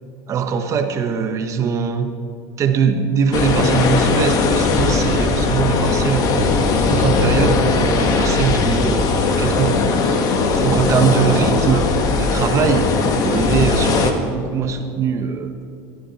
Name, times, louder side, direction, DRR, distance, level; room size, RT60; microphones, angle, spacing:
voice 1, 0.3-2.1 2.6-6.4 6.9-12.9 13.2-15.6, right 6 dB, 40° right, 7 dB, 1.4 m, -21 dB
sound 1, 3.3-14.1, left 4 dB, 45° left, 1.7 m, -18 dB
16.5 x 13.5 x 4.4 m, 2.5 s
supercardioid pair, 120°, 8 cm